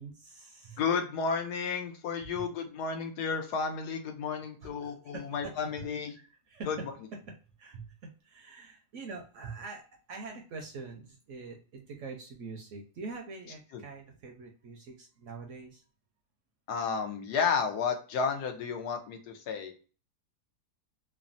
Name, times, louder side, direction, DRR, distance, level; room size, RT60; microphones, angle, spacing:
voice 1, 0.0-0.8 4.6-5.5 6.1-6.9 7.2-7.3 7.6-15.8, right 4 dB, 65° right, 2 dB, 0.8 m, -44 dB
voice 2, 0.8-6.1 6.7-6.8 16.7-19.8, left 5 dB, 85° left, 5 dB, 1.2 m, -32 dB
3.3 x 2.1 x 2.4 m, 0.38 s
omnidirectional pair, 1.7 m